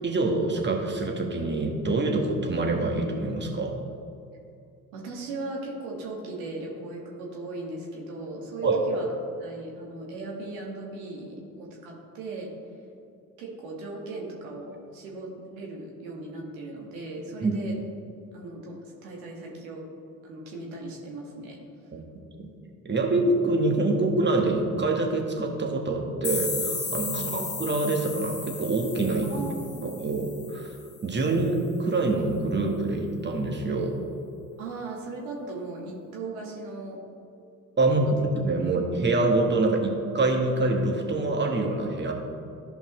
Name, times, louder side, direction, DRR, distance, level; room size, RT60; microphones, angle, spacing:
voice 1, 0.0-3.7 8.6-8.8 17.4-17.5 21.9-22.0 22.4-22.5 22.8-29.3 29.8-30.8 31.0-33.9 37.8-38.1 38.4-42.1, right 2 dB, 25° right, 1 dB, 1.6 m, -25 dB
voice 2, 4.9-9.1 9.4-12.5 13.4-17.8 18.3-19.9 20.2-21.6 27.0-27.4 29.3-29.9 34.6-37.0 38.0-38.1 38.6-38.7, right 2 dB, 75° right, -1 dB, 1.7 m, -38 dB
sound 1, 26.2-30.9, left 4 dB, 25° left, 1.2 m, -34 dB
14.0 x 5.3 x 3.1 m, 2.6 s
hypercardioid pair, 50°, 43 cm